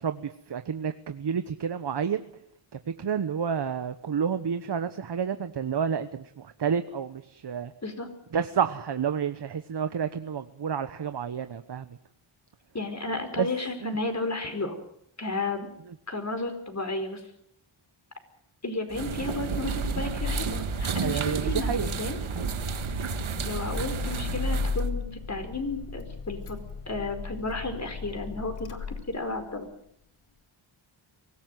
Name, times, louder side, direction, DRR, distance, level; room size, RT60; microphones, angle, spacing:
voice 1, 0.0-2.2 2.7-7.7 8.3-11.9 13.4-13.5 13.8-14.0 21.0-21.9, right 7 dB, 55° right, 10 dB, 1.2 m, -30 dB
voice 2, 12.7-14.7 15.2-15.7 16.1-17.2 18.6-22.2 23.4-26.6 26.9-29.7, left 2 dB, 35° left, 7 dB, 5.0 m, -33 dB
sound 1, 18.9-24.9, right 6 dB, 70° right, 1.8 m, -31 dB
Car / Engine starting, 19.6-29.6, left 5 dB, 85° left, 2.3 m, -36 dB
24.0 x 15.5 x 9.3 m, 0.74 s
cardioid pair, 70°, 49 cm